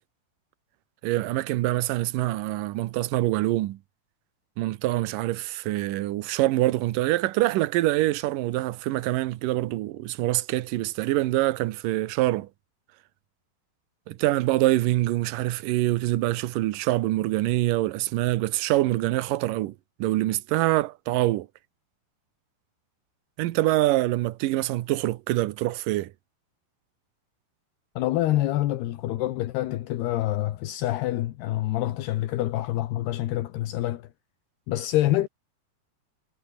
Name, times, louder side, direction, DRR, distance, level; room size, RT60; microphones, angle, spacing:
voice 1, 1.0-3.8 4.6-12.5 14.1-21.5 23.4-26.1, right 16 dB, 70° right, 2.1 m, -25 dB
voice 2, 28.0-34.1 34.7-35.3, left 15 dB, 75° left, 3.2 m, -26 dB
omnidirectional pair, 4.8 m